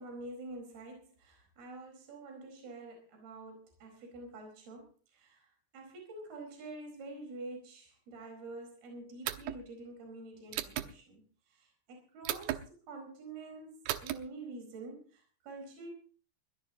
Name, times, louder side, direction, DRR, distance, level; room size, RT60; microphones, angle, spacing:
voice 1, 0.0-15.9, right 2 dB, 60° right, 2 dB, 6.2 m, -47 dB
sound 1, 9.3-9.6 10.5-10.9 12.3-12.6 13.9-14.2, right 12 dB, 75° right, 2.4 m, -35 dB
21.5 x 17.0 x 2.8 m, 0.39 s
omnidirectional pair, 5.1 m